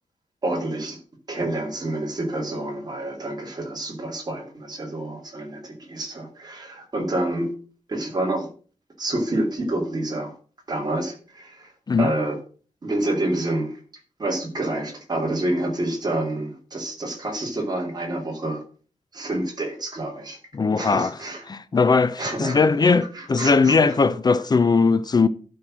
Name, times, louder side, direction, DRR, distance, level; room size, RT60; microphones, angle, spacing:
voice 1, 0.4-1.0 1.3-7.5 7.9-8.5 9.0-10.3 10.7-11.7 12.0-12.4 12.8-13.8 14.2-18.6 19.1-20.4 20.8-21.5 22.2-24.0, right 1 dB, 30° right, 2.4 m, -28 dB
voice 2, 20.5-21.1 21.5-25.3, left 4 dB, 30° left, 0.5 m, -19 dB
11.5 x 4.6 x 6.0 m
wide cardioid pair, 170°, 13 cm